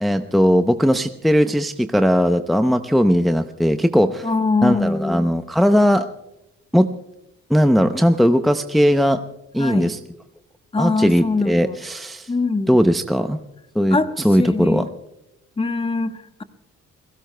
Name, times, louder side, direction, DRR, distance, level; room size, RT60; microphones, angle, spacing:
voice 1, 0.0-4.3 4.6-6.1 6.7-6.9 7.5-9.2 9.5-10.0 10.8-12.3 12.7-13.4 13.7-14.0 14.2-14.9, equal, ahead, 7 dB, 0.6 m, -18 dB
voice 2, 4.2-5.3 9.6-9.9 10.7-11.8 12.3-12.8 13.9-14.9 15.6-16.4, left 3 dB, 20° left, 9 dB, 1.1 m, -23 dB
29.5 x 17.0 x 2.2 m, 0.90 s
cardioid pair, 90°, 30 cm